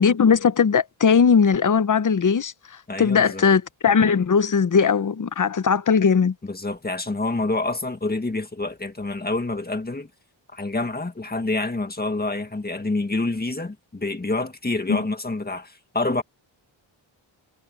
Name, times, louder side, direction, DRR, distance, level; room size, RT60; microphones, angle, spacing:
voice 1, 0.0-2.5 3.0-6.3 14.9-15.0, left 6 dB, 40° left, 1.0 m, -19 dB
voice 2, 2.9-3.5 6.4-10.1 10.5-16.2, left 2 dB, 20° left, 1.9 m, -27 dB
wide cardioid pair, 140°, 46 cm